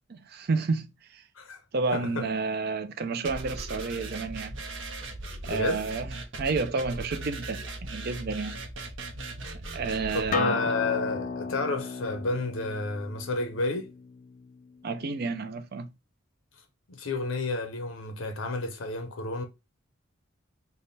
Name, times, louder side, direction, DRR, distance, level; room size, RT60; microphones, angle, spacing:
voice 1, 0.1-1.2 1.7-4.6 5.5-8.6 9.7-10.7 14.8-15.9, right 4 dB, 50° right, 0.5 m, -31 dB
voice 2, 1.9-2.3 5.5-5.8 10.1-13.9 16.9-19.4, left 2 dB, 80° left, 0.7 m, -30 dB
sound 1, 3.2-10.3, right 2 dB, 70° right, 0.8 m, -38 dB
Acoustic guitar, 10.3-15.5, left 5 dB, 40° left, 0.3 m, -35 dB
3.4 x 2.2 x 3.9 m
head